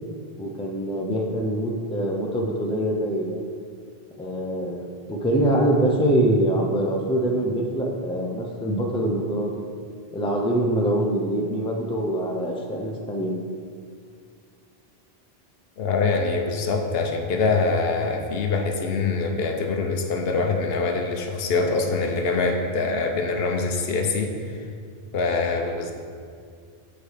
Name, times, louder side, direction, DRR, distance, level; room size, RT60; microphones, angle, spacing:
voice 1, 0.4-3.5 4.2-4.8 5.1-9.5 10.1-13.3, right 1 dB, 10° left, 0 dB, 0.4 m, -24 dB
voice 2, 15.8-24.6 25.1-25.9, left 4 dB, 75° left, 3 dB, 0.9 m, -24 dB
8.1 x 3.2 x 4.9 m, 2.2 s
omnidirectional pair, 1.0 m